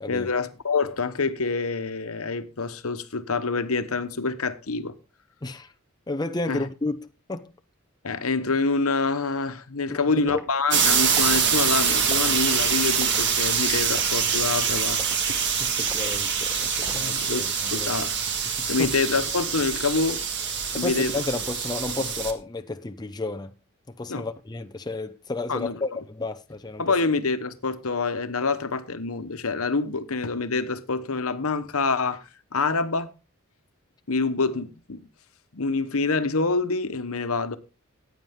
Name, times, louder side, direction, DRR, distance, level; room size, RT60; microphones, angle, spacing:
voice 1, 0.1-4.9 6.5-6.6 8.0-15.0 15.3-15.4 16.9-17.4 17.7-18.2 18.7-20.2 20.7-21.1 24.1-24.3 25.5-25.8 26.8-32.2 32.5-33.1 34.1-35.0 35.5-37.6, left 4 dB, 85° left, 1.1 m, -26 dB
voice 2, 5.4-5.7 6.1-7.5 9.9-10.4 15.6-17.9 18.6-18.9 20.7-23.5 23.9-26.9, left 2 dB, 20° left, 0.7 m, -32 dB
Liquid, 10.3-10.5 11.1-11.4 12.1-12.4 13.0-13.3 13.9-14.2 14.9-15.2 15.9-16.1 16.8-17.2 17.6-17.9, right 1 dB, 15° right, 1.1 m, -41 dB
sound 1, 10.7-22.3, right 6 dB, 55° right, 1.7 m, -25 dB
15.0 x 9.1 x 3.7 m
head